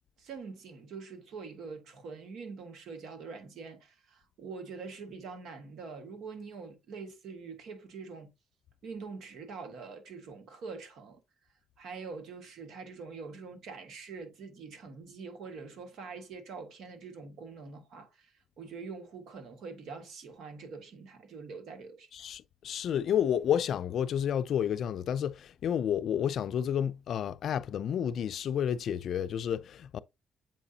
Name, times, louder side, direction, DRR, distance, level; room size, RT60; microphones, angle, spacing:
voice 1, 0.2-8.3 8.8-11.2 11.8-22.1, right 4 dB, 75° right, 1.5 m, -44 dB
voice 2, 22.1-30.0, left 9 dB, 65° left, 0.4 m, -30 dB
7.4 x 4.8 x 2.7 m
cardioid pair, 90°, 0 cm